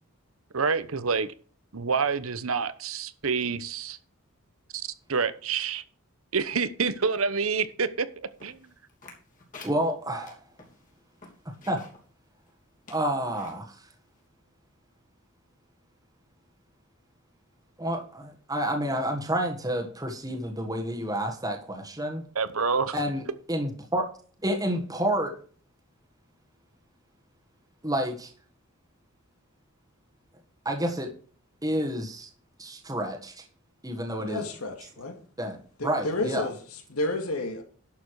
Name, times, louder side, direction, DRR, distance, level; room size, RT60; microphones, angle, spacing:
voice 1, 0.5-1.3 1.7-4.0 4.7-5.8 6.3-8.7 22.3-23.0, right 5 dB, 70° right, 1.0 m, -28 dB
sound 1, 8.4-12.1 12.5-12.6 12.8-13.6 14.2-14.3, left 3 dB, 40° left, 3.1 m, -49 dB
voice 2, 9.6-10.4 11.4-11.8 12.9-13.8 17.8-22.2 22.9-23.2 23.5-24.1 24.4-25.3 27.8-28.3 30.6-31.1 31.6-32.3 32.6-33.4 33.8-34.4 35.4-36.5, right 1 dB, 15° right, 1.6 m, -29 dB
voice 3, 34.2-35.2 35.8-37.6, left 2 dB, 80° left, 2.2 m, -31 dB
11.5 x 6.9 x 4.8 m
head